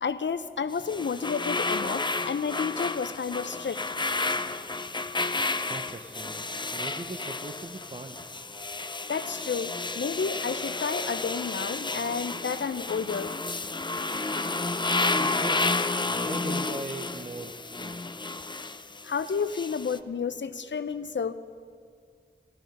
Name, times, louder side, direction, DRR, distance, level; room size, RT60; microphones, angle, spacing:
voice 1, 0.0-3.8 9.1-13.4 19.0-21.3, left 5 dB, 70° left, 12 dB, 0.5 m, -31 dB
sound 1, 0.7-20.0, left 3 dB, 25° left, 0.4 m, -31 dB
voice 2, 5.7-6.5 6.7-8.2 15.2-15.7 16.0-18.0, right 2 dB, 35° right, 5 dB, 0.7 m, -40 dB
13.0 x 12.5 x 5.2 m, 2.2 s
wide cardioid pair, 45°, 19 cm